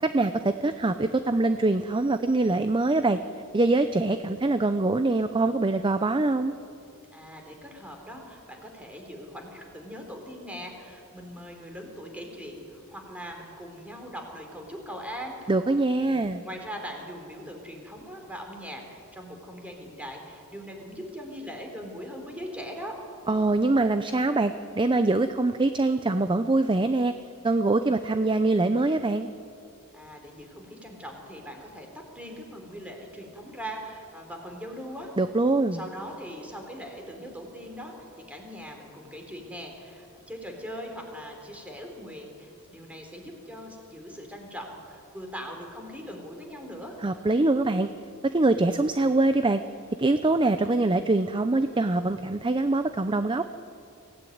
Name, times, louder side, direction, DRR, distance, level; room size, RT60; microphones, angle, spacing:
voice 1, 0.0-3.2 3.5-6.5 15.5-16.4 23.3-27.1 27.4-29.3 35.2-35.8 47.0-47.9 48.3-49.6 50.0-53.4, right 2 dB, 20° right, 10 dB, 0.6 m, -24 dB
voice 2, 7.1-15.4 15.9-23.0 29.9-35.1 35.7-47.0, equal, 5° right, 2 dB, 3.8 m, -41 dB
24.0 x 16.5 x 9.4 m, 2.6 s
head